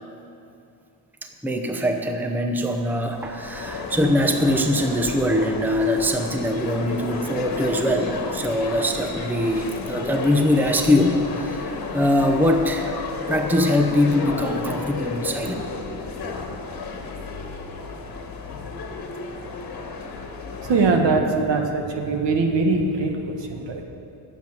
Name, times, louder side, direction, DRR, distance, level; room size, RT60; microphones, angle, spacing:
voice 1, 1.4-13.0 13.3-15.5, left 1 dB, 5° right, 5 dB, 0.8 m, -22 dB
sound 1, 3.1-20.9, left 4 dB, 50° left, 1.5 m, -32 dB
voice 2, 20.6-23.8, right 3 dB, 65° right, 3 dB, 1.5 m, -22 dB
10.5 x 7.3 x 9.0 m, 2.6 s
cardioid pair, 105°, 46 cm